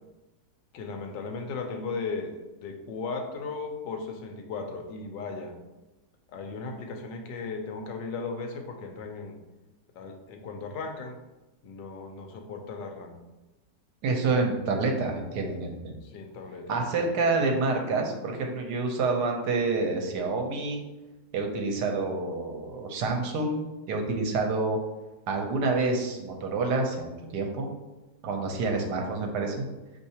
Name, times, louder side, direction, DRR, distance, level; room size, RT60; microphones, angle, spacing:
voice 1, 0.7-5.5 6.3-9.4 9.9-11.2 11.6-13.2 14.2-14.3 16.0-16.8, left 4 dB, 85° left, 3 dB, 1.3 m, -36 dB
voice 2, 14.0-16.0 16.7-20.8 21.3-24.8 25.3-27.7 28.2-29.6, right 3 dB, 75° right, 2 dB, 1.2 m, -28 dB
5.5 x 3.2 x 2.8 m, 1.1 s
omnidirectional pair, 1.9 m